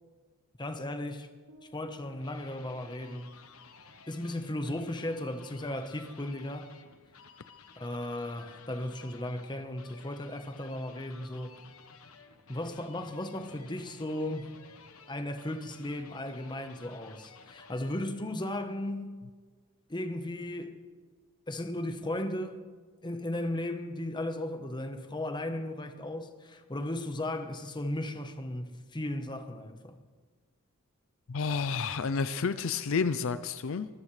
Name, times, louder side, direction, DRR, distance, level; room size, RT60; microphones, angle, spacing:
voice 1, 0.6-1.3 1.6-3.4 4.1-6.7 7.8-11.6 12.5-14.5 15.1-19.2 19.9-20.8 21.5-22.6 23.0-30.0, left 1 dB, 20° left, 1.0 m, -36 dB
sound 1, 1.5-3.7, left 1 dB, 85° right, 2.5 m, -60 dB
sound 2, 1.8-18.3, left 5 dB, 90° left, 1.2 m, -54 dB
voice 2, 31.3-33.9, left 5 dB, 65° left, 0.5 m, -30 dB
24.5 x 13.5 x 3.3 m
head